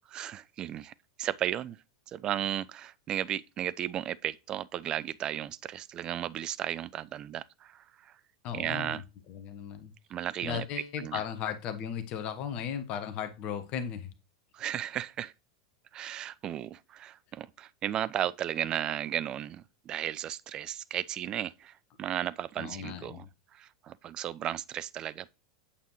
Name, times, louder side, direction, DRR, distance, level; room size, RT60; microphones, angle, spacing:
voice 1, 0.1-8.2 8.5-9.0 10.1-10.7 11.0-11.2 14.5-15.3 15.9-23.3 23.5-25.3, right 11 dB, 35° right, 0.4 m, -35 dB
voice 2, 8.4-9.0 9.3-9.9 10.4-14.1 22.6-23.3, left 8 dB, 45° left, 1.1 m, -36 dB
8.5 x 7.1 x 3.0 m
figure-of-eight pair, 85°, 2 cm